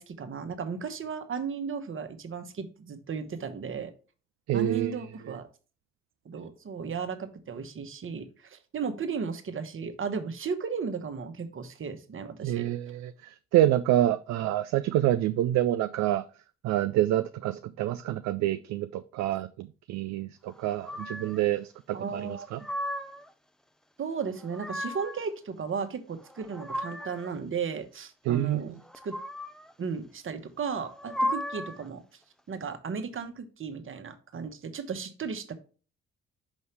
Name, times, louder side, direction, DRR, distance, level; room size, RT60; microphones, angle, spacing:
voice 1, 0.0-3.9 4.5-5.5 6.2-12.6 21.9-22.5 24.0-28.8 29.0-29.1 29.8-32.0 32.5-35.5, right 6 dB, 40° right, 1.1 m, -35 dB
voice 2, 4.5-5.4 12.4-16.2 16.6-22.6 28.3-28.8, right 13 dB, 55° right, 0.4 m, -27 dB
sound 1, 20.8-21.4 22.3-23.3 24.2-25.2 26.2-27.3 28.8-29.7 30.8-31.9, left 1 dB, ahead, 0.6 m, -35 dB
6.2 x 5.4 x 3.3 m
hypercardioid pair, 45°, 32 cm